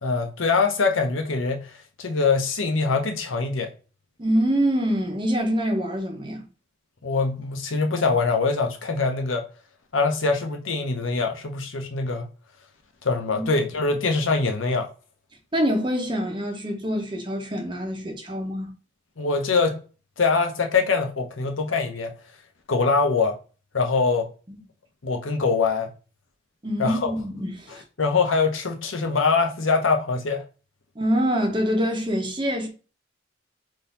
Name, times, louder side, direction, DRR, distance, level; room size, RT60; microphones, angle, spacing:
voice 1, 0.0-1.7 2.0-3.7 7.0-9.4 9.9-12.3 13.0-14.9 19.2-19.8 20.2-22.1 22.7-23.4 23.7-24.3 25.0-25.9 26.8-27.1 28.0-30.4, left 4 dB, 85° left, 0.8 m, -23 dB
voice 2, 4.2-6.4 13.3-13.5 15.5-18.7 24.5-24.6 26.6-27.7 31.0-32.7, equal, 25° right, 0.9 m, -25 dB
3.9 x 2.7 x 3.9 m
head